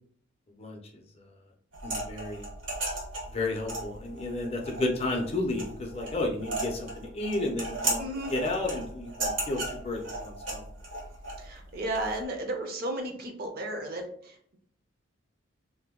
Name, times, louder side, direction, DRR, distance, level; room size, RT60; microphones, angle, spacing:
voice 1, 0.6-1.3 1.8-2.5 3.3-8.0 8.3-10.7, left 2 dB, 30° left, 1 dB, 0.5 m, -32 dB
sound 1, 1.7-12.2, right 2 dB, 70° right, 0.9 m, -36 dB
voice 2, 8.0-8.3 11.4-14.6, right 1 dB, 45° right, 4 dB, 0.5 m, -34 dB
2.7 x 2.2 x 3.6 m, 0.63 s
head